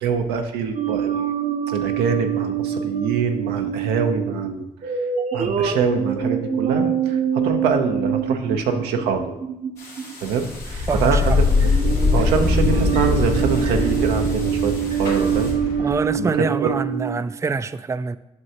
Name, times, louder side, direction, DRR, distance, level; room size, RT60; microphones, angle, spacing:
voice 1, 0.0-1.3 1.7-5.0 5.3-9.3 10.2-11.7 12.1-15.5 16.2-16.8, right 6 dB, 90° right, 0.6 m, -24 dB
sound 1, 0.7-10.1 10.9-11.2 11.6-17.2, right 7 dB, 55° right, 0.8 m, -25 dB
sound 2, 9.8-15.5, left 2 dB, 90° left, 2.3 m, -42 dB
sound 3, 10.5-16.1, left 3 dB, 65° left, 2.2 m, -22 dB
voice 2, 10.9-11.4 15.8-18.2, right 4 dB, 20° right, 0.3 m, -25 dB
7.9 x 6.3 x 2.8 m
supercardioid pair, 45°, 17 cm